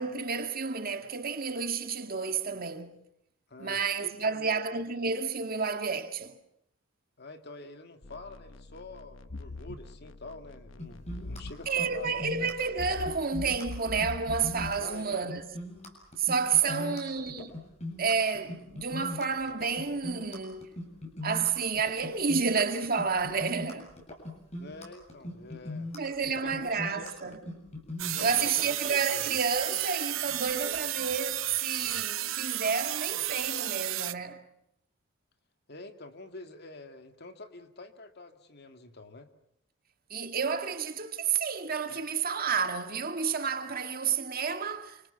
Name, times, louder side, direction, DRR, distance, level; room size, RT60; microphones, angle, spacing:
voice 1, 0.0-3.0 3.6-6.3 11.7-15.5 16.2-17.6 18.0-20.7 21.2-23.9 25.9-27.4 28.2-34.4 40.1-45.1, right 5 dB, 50° right, 2.1 m, -30 dB
voice 2, 3.5-4.5 7.2-12.5 14.8-15.2 16.6-17.3 24.6-25.9 26.3-27.4 28.0-29.3 35.7-39.3, left 2 dB, 55° left, 2.4 m, -46 dB
sound 1, 8.0-14.9, left 2 dB, 70° left, 1.1 m, -43 dB
sound 2, 10.8-28.7, left 1 dB, 35° left, 7.5 m, -40 dB
sound 3, 28.0-34.1, right 14 dB, 80° right, 0.9 m, -33 dB
29.0 x 26.0 x 5.9 m
head